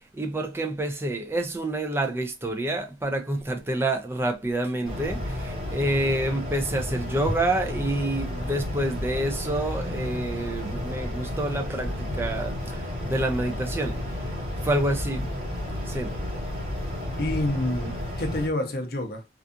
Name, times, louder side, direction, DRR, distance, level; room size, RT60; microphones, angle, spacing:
voice 1, 0.0-14.0 14.6-15.3 15.9-16.1, right 1 dB, 15° right, 0.3 m, -28 dB
sound 1, 4.8-18.5, left 1 dB, 35° right, 1.2 m, -32 dB
voice 2, 17.2-19.3, left 1 dB, 55° left, 0.6 m, -28 dB
2.5 x 2.3 x 2.5 m
head